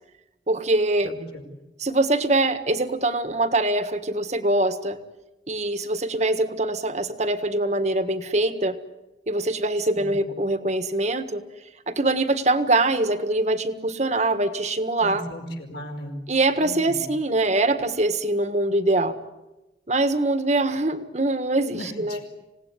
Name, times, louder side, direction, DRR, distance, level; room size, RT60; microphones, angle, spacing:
voice 1, 0.5-1.1 1.8-5.0 5.5-8.8 9.3-11.4 11.9-15.2 16.3-19.2 19.9-22.2, right 2 dB, 40° right, 10 dB, 1.6 m, -23 dB
voice 2, 1.0-1.4 9.9-10.2 15.0-16.2 16.6-17.0 21.7-22.2, equal, 65° left, 3 dB, 4.8 m, -37 dB
27.0 x 18.0 x 9.7 m, 1.1 s
head